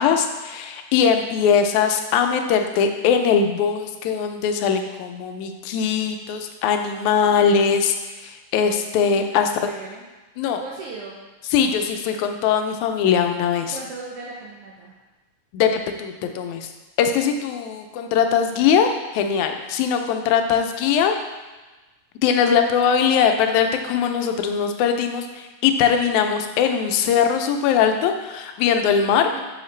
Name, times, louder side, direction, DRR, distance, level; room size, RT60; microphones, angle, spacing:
voice 1, 0.0-9.5 10.4-10.6 11.5-13.8 15.5-16.7 17.0-21.1 22.2-29.3, left 7 dB, 85° left, 5 dB, 2.0 m, -21 dB
voice 2, 9.2-10.1 10.6-11.2 13.6-14.9 29.2-29.4, right 3 dB, 75° right, -4 dB, 1.3 m, -37 dB
5.7 x 5.3 x 3.1 m, 1.2 s
omnidirectional pair, 3.3 m